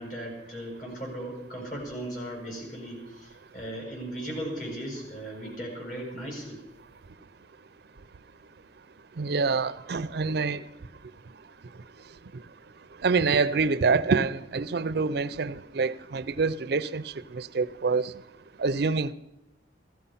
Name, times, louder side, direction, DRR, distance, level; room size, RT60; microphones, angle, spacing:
voice 1, 0.0-6.6, right 1 dB, 45° left, 7.4 m, -37 dB
voice 2, 9.2-10.6 13.0-17.0 17.3-18.1 18.6-19.1, right 4 dB, 60° right, 0.5 m, -26 dB
16.0 x 14.5 x 5.6 m
head